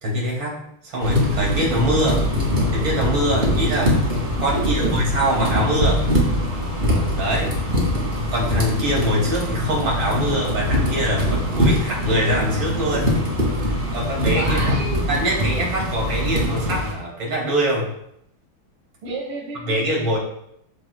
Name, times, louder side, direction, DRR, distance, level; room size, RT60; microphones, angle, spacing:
voice 1, 0.0-2.2 2.7-4.0 4.4-6.1 7.1-7.5 8.3-13.2 13.6-14.6 15.1-17.9 19.6-20.2, equal, 70° right, -3 dB, 3.0 m, -23 dB
sound 1, 1.0-16.9, equal, 25° right, 2.0 m, -23 dB
sound 2, 2.3-11.8, left 4 dB, 90° left, 1.6 m, -35 dB
voice 2, 4.5-5.1 14.2-15.0 19.0-20.2, right 2 dB, 85° right, -4 dB, 2.2 m, -30 dB
13.0 x 4.7 x 2.2 m, 0.75 s
omnidirectional pair, 2.3 m